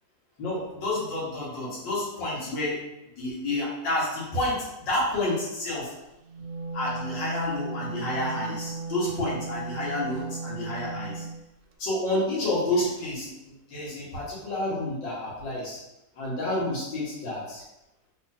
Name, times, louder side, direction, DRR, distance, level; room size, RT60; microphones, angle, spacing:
voice 1, 0.4-2.8 3.2-5.9 6.7-11.2 11.8-13.3 13.7-15.8 16.2-17.6, left 1 dB, 85° left, -6 dB, 2.3 m, -29 dB
Wind instrument woodwind instrument, 6.2-11.4, right 4 dB, 80° right, 1.3 m, -36 dB
4.3 x 4.1 x 2.8 m, 0.92 s
omnidirectional pair, 1.9 m